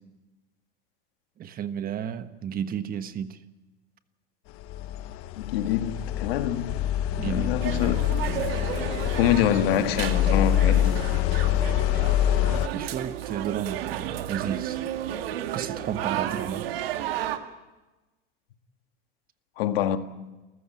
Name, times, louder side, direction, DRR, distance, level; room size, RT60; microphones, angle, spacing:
voice 1, 1.4-3.4 7.1-7.6 12.4-14.9 15.5-16.7, right 9 dB, 30° right, 1.3 m, -33 dB
sound 1, 4.6-12.7, left 11 dB, 50° left, 1.3 m, -25 dB
voice 2, 5.4-6.8 7.2-8.1 9.2-11.1 19.6-20.0, left 11 dB, 80° left, 1.9 m, -25 dB
sound 2, 7.6-17.4, right 12 dB, 85° right, 2.0 m, -33 dB
30.0 x 14.5 x 9.0 m
supercardioid pair, 135°, 29 cm